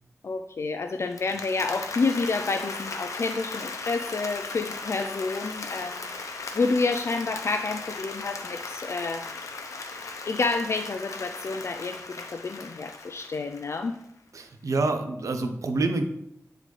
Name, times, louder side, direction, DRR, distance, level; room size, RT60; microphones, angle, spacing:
voice 1, 0.2-6.1 6.5-9.3 10.3-12.0 12.3-13.9, left 3 dB, 55° left, 7 dB, 0.4 m, -29 dB
Applause, 1.0-14.0, left 3 dB, 80° left, 0.7 m, -37 dB
voice 2, 14.3-16.0, right 3 dB, 85° right, 6 dB, 0.7 m, -27 dB
9.0 x 3.7 x 3.3 m, 0.82 s
wide cardioid pair, 95°, 5 cm